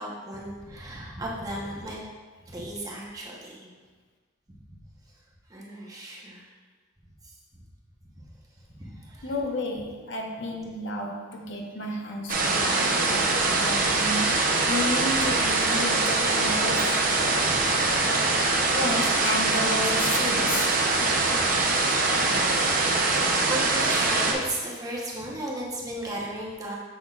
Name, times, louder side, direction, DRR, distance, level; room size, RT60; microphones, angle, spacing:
voice 1, 0.0-2.0 2.4-3.7 4.5-4.8 5.5-6.4 7.2-7.3 8.8-9.3 11.8-12.0 17.1-18.1 21.1-22.6 23.1-26.8, right 1 dB, 20° right, -4 dB, 0.9 m, -36 dB
voice 2, 9.2-14.3 14.7-17.0 18.7-20.7, left 1 dB, 65° left, 1 dB, 0.7 m, -32 dB
sound 1, 12.3-24.3, right 3 dB, 45° right, 0.7 m, -23 dB
7.3 x 6.1 x 2.4 m, 1.4 s
head